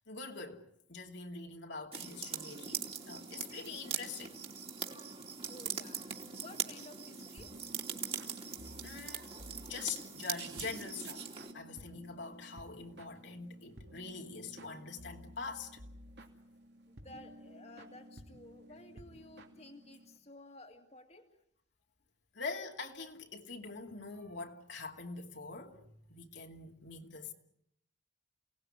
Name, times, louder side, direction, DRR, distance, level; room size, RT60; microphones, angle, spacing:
voice 1, 0.1-4.3 8.7-9.3 9.7-11.2 11.5-15.7 22.3-25.8 26.1-27.3, left 4 dB, 65° left, 2.6 m, -44 dB
sound 1, 1.9-11.5, right 6 dB, 30° right, 3.1 m, -41 dB
voice 2, 5.5-6.0 6.4-7.5 16.9-21.3, left 2 dB, 35° left, 2.2 m, -54 dB
sound 2, 7.4-20.2, equal, 60° right, 2.9 m, -54 dB
29.5 x 18.5 x 9.9 m
head